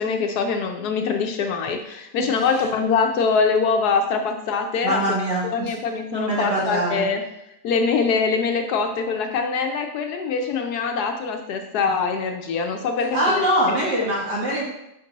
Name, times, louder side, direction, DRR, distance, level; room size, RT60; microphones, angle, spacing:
voice 1, 0.0-5.0 5.4-7.2 7.6-13.8, left 5 dB, 70° left, 5 dB, 1.0 m, -23 dB
voice 2, 4.8-5.7 6.1-7.0 13.1-14.6, right 1 dB, 70° right, -5 dB, 2.6 m, -23 dB
5.2 x 5.2 x 3.9 m, 0.85 s
omnidirectional pair, 1.9 m